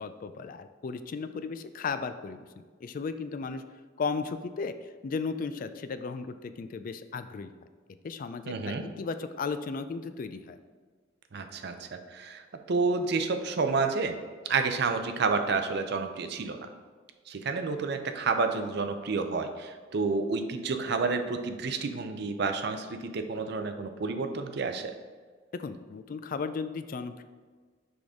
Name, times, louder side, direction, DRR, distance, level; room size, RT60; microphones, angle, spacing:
voice 1, 0.0-2.5 2.8-3.6 4.0-7.5 8.0-10.6 25.5-27.2, left 4 dB, 45° left, 11 dB, 0.3 m, -35 dB
voice 2, 8.5-8.8 11.3-14.2 14.5-16.6 17.3-24.9, right 4 dB, 60° right, 7 dB, 0.5 m, -30 dB
6.1 x 5.0 x 3.6 m, 1.5 s
head